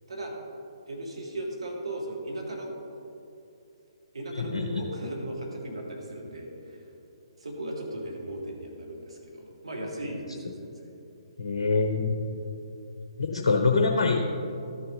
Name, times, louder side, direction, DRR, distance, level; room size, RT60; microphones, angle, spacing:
voice 1, 0.9-2.7 4.1-6.9 7.4-10.9 12.3-12.6, right 1 dB, 70° right, -2 dB, 2.1 m, -37 dB
voice 2, 4.4-4.8 11.4-12.2 13.2-14.2, left 4 dB, 55° left, 3 dB, 0.7 m, -24 dB
12.5 x 6.8 x 3.8 m, 2.8 s
figure-of-eight pair, 130°, 3 cm